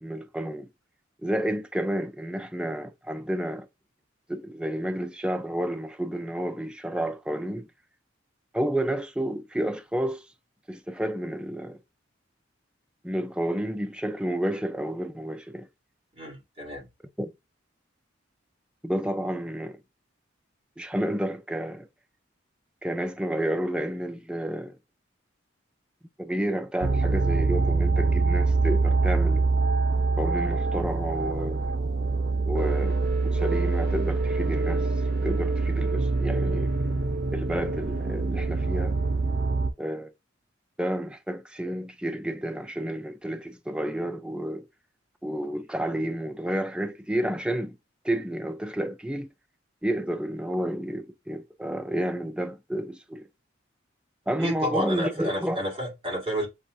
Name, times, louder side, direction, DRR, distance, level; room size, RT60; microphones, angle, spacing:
voice 1, 0.0-0.7 1.2-3.7 4.3-7.7 8.5-10.2 10.7-11.8 13.0-15.7 17.2-17.3 18.8-19.8 20.8-21.9 22.8-24.8 26.2-29.4 30.2-31.7 32.5-33.0 33.3-34.9 35.1-36.7 37.3-39.0 39.8-40.1 40.8-44.7 45.2-47.8 48.0-49.3 49.8-53.3 54.3-55.6, right 1 dB, 5° right, 0.3 m, -30 dB
voice 2, 16.2-16.9 54.4-56.5, equal, 30° right, 1.9 m, -31 dB
sound 1, 26.8-39.7, right 3 dB, 55° right, 0.5 m, -25 dB
7.0 x 2.5 x 2.6 m
head